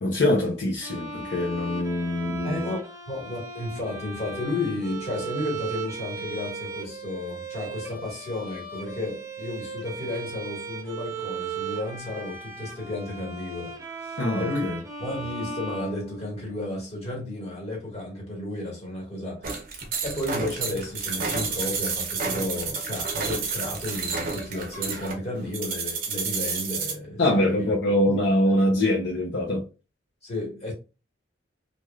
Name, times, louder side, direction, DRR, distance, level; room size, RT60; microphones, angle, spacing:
voice 1, 0.0-2.7 14.2-14.8 27.2-29.6, left 1 dB, 65° left, 0.7 m, -24 dB
Bowed string instrument, 0.8-16.7, right 4 dB, 15° right, 0.6 m, -37 dB
voice 2, 2.4-14.7 15.0-19.5 20.0-27.7 28.0-28.2 30.2-30.7, left 2 dB, 35° left, 1.6 m, -33 dB
sound 1, 19.4-26.9, right 5 dB, 50° right, 0.8 m, -30 dB
3.1 x 2.6 x 2.3 m
head